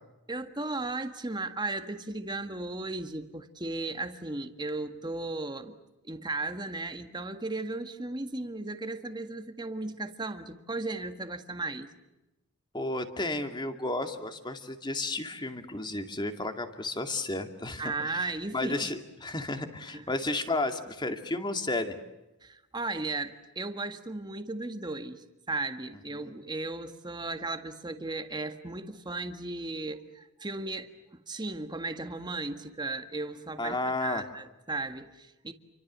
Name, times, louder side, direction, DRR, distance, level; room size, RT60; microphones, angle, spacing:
voice 1, 0.3-5.7 6.0-11.9 17.8-18.9 19.9-20.1 22.4-35.5, right 2 dB, 20° right, 1.7 m, -36 dB
voice 2, 12.7-21.9 26.2-26.3 33.6-34.2, left 2 dB, 20° left, 2.3 m, -33 dB
29.5 x 24.5 x 7.5 m
head